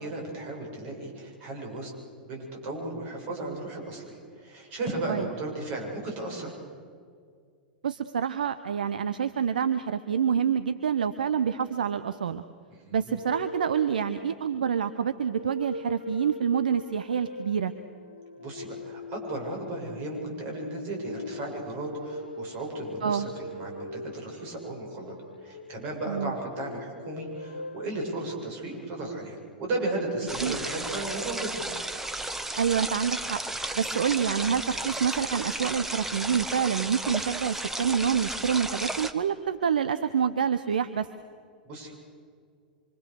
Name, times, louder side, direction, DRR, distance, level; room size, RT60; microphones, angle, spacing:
voice 1, 0.0-1.9 2.2-6.5 12.7-13.2 18.4-25.1 25.4-31.7 41.6-41.9, right 2 dB, 40° right, 1 dB, 7.8 m, -35 dB
voice 2, 7.8-12.4 12.9-17.7 23.0-23.3 26.1-26.3 30.4-30.6 32.6-33.4 33.8-41.1, right 7 dB, 65° right, 11 dB, 0.9 m, -27 dB
sound 1, 13.2-27.9, left 1 dB, 80° left, 0.9 m, -41 dB
sound 2, 30.3-39.1, right 2 dB, 5° right, 1.5 m, -33 dB
26.5 x 25.5 x 6.6 m, 2.2 s
figure-of-eight pair, 95°, 5 cm